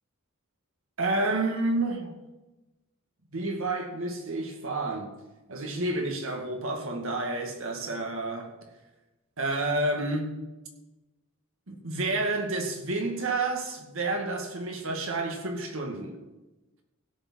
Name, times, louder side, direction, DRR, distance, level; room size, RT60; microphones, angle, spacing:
voice 1, 1.0-2.2 3.3-5.1 5.5-8.6 9.4-10.4 11.7-16.2, right 2 dB, 65° right, 2.1 m, -30 dB
16.5 x 6.2 x 6.2 m
head